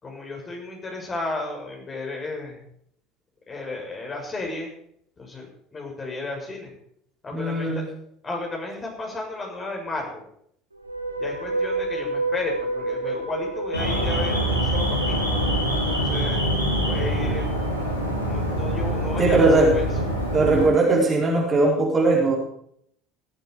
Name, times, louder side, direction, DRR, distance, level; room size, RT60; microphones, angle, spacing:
voice 1, 0.0-2.6 3.5-4.7 5.2-6.8 7.2-7.8 8.2-10.2 11.2-15.3 15.7-16.4 16.8-17.5 18.2-19.9, left 2 dB, 25° left, 0 dB, 7.1 m, -33 dB
voice 2, 7.3-7.9 19.2-19.8 20.3-22.4, right 2 dB, 25° right, -1 dB, 4.3 m, -19 dB
sound 1, 10.7-18.0, right 2 dB, 85° right, 2.3 m, -31 dB
Alarm, 13.7-20.6, right 1 dB, 90° left, 3.9 m, -24 dB
18.0 x 13.5 x 5.1 m, 0.70 s
figure-of-eight pair, 65°, 0 cm